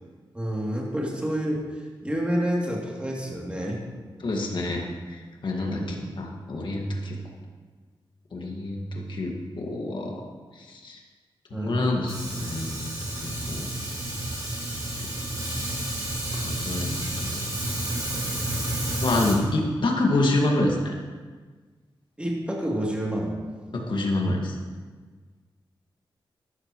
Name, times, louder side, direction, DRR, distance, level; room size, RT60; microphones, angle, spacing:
voice 1, 0.3-3.8 5.6-6.1 11.5-11.8 22.2-23.4, equal, 15° right, -3 dB, 2.8 m, -29 dB
voice 2, 4.2-4.8 5.1-7.2 8.3-10.2 10.6-11.0 11.5-13.0 13.2-13.7 16.4-17.4 19.0-20.9 23.7-24.6, left 2 dB, 65° left, 0 dB, 1.9 m, -27 dB
Fire, 12.1-19.3, right 1 dB, 45° right, 3.9 m, -30 dB
14.0 x 11.5 x 3.1 m, 1.4 s
wide cardioid pair, 95°, 9 cm